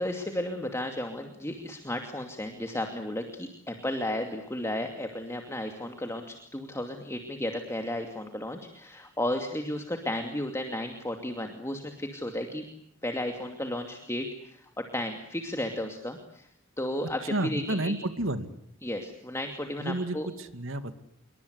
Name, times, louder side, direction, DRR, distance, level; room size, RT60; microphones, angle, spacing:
voice 1, 0.0-12.6 13.0-16.5 16.8-17.9 18.8-20.3, left 1 dB, 15° left, 5 dB, 2.5 m, -34 dB
voice 2, 17.3-18.5 19.8-20.9, right 1 dB, 90° right, 10 dB, 2.4 m, -30 dB
28.0 x 23.0 x 8.2 m, 0.70 s
head